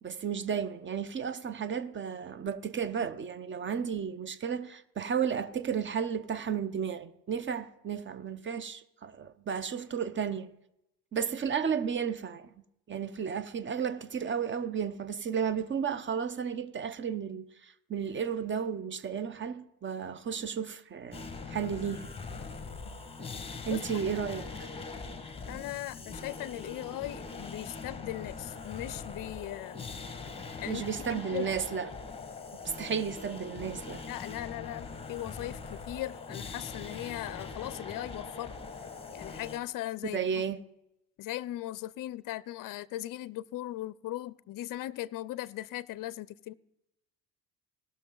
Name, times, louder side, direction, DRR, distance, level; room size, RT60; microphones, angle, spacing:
voice 1, 0.0-10.5 11.1-12.5 12.9-22.1 23.6-24.7 30.6-31.9 32.6-34.0 40.0-40.6, right 7 dB, 25° right, 0.8 m, -33 dB
sound 1, 21.1-39.6, left 4 dB, 10° left, 1.5 m, -42 dB
voice 2, 23.7-24.0 25.5-29.9 30.6-31.5 34.1-38.5 39.1-40.4 41.2-46.5, left 15 dB, 45° left, 0.6 m, -39 dB
18.0 x 6.4 x 3.8 m
hypercardioid pair, 80°, 48 cm